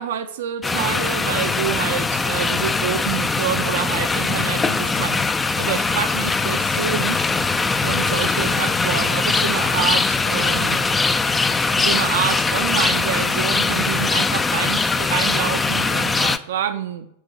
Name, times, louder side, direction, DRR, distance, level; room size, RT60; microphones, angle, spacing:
voice 1, 0.0-7.2 7.8-10.8 11.8-17.1, right 9 dB, 60° right, 8 dB, 0.4 m, -27 dB
sound 1, 0.6-16.4, left 4 dB, 15° left, 0.3 m, -21 dB
6.3 x 4.4 x 6.4 m, 0.75 s
figure-of-eight pair, 90°, 0 cm